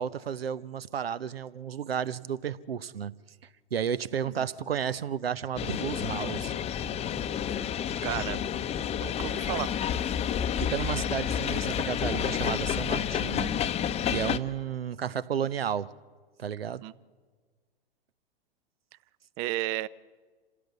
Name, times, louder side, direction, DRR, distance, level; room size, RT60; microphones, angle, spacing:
voice 1, 0.0-3.1 3.7-6.5 10.6-13.5 14.1-15.9 16.4-16.8, right 8 dB, 85° right, 17 dB, 0.9 m, -32 dB
sound 1, 5.6-14.4, left 9 dB, 20° left, 0.8 m, -30 dB
voice 2, 8.0-8.5 9.0-9.7 16.8-16.9 19.4-19.9, right 18 dB, 35° right, 20 dB, 0.6 m, -33 dB
27.0 x 16.0 x 8.1 m, 1.5 s
hypercardioid pair, 110°, 29 cm